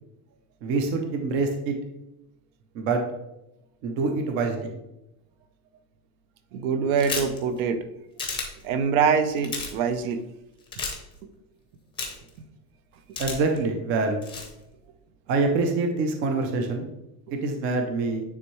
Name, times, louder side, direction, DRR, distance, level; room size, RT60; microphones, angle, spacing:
voice 1, 0.6-1.8 2.7-3.0 3.8-4.7 13.2-14.2 15.3-16.9 17.3-18.2, right 3 dB, 30° right, 4 dB, 0.4 m, -25 dB
voice 2, 6.5-7.8 8.6-10.2, right 6 dB, 60° right, 9 dB, 0.8 m, -24 dB
sound 1, 7.0-7.4 8.2-8.5 9.4-9.7 10.7-10.9 12.0-12.3 13.2-13.6 14.2-14.5, left 4 dB, 10° left, 0.7 m, -31 dB
9.4 x 3.5 x 3.0 m, 0.91 s
cardioid pair, 170°, 47 cm